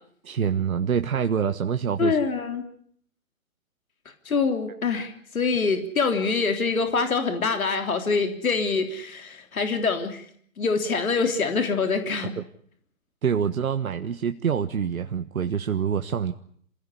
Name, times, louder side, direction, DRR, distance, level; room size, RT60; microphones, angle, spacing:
voice 1, 0.2-2.2 12.4-12.5 13.2-16.3, right 7 dB, 85° right, 8 dB, 1.4 m, -26 dB
voice 2, 2.0-2.6 4.3-10.3 10.6-12.3, left 4 dB, 85° left, 6 dB, 3.6 m, -25 dB
27.0 x 16.5 x 9.9 m, 0.64 s
hypercardioid pair, 145°, 41 cm